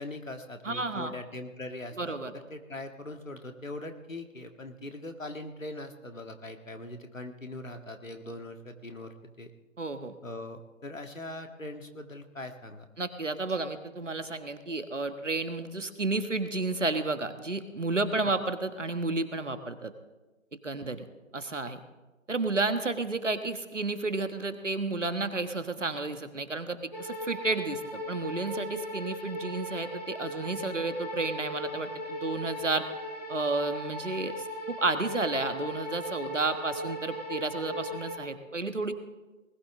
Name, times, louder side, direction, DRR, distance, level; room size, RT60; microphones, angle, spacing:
voice 1, 0.0-9.5 10.2-12.9, left 2 dB, 75° left, 6 dB, 1.8 m, -41 dB
voice 2, 0.6-1.1 2.0-2.3 9.8-10.1 13.0-19.9 20.6-21.1 21.3-21.8 22.3-32.9 33.3-38.9, right 3 dB, 65° right, 9 dB, 1.5 m, -31 dB
sound 1, 26.9-38.2, equal, 30° left, 1.9 m, -38 dB
20.0 x 14.5 x 3.8 m, 1.1 s
figure-of-eight pair, 170°, 39 cm